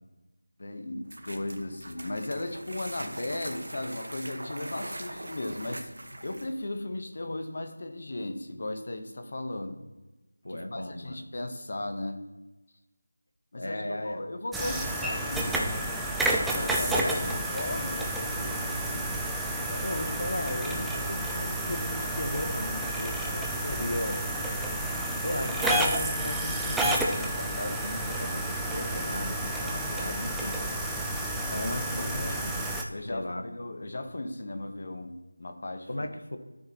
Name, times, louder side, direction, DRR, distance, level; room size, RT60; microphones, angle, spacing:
voice 1, 0.6-5.9 6.2-9.8 10.5-12.2 13.5-16.0 16.5-17.0 17.5-19.1 19.6-20.0 31.7-32.4 32.9-35.9, left 1 dB, 50° left, 7 dB, 1.1 m, -36 dB
sound 1, 1.0-6.6, right 1 dB, 80° right, 1.3 m, -41 dB
voice 2, 10.4-11.2 13.6-14.2 16.9-17.6 19.8-24.2 25.2-30.6 31.5-33.4 35.9-36.4, left 1 dB, 80° left, 7 dB, 1.3 m, -36 dB
sound 2, 14.5-32.8, right 1 dB, ahead, 0.4 m, -30 dB
12.5 x 6.4 x 3.0 m, 1.1 s
figure-of-eight pair, 170°, 0 cm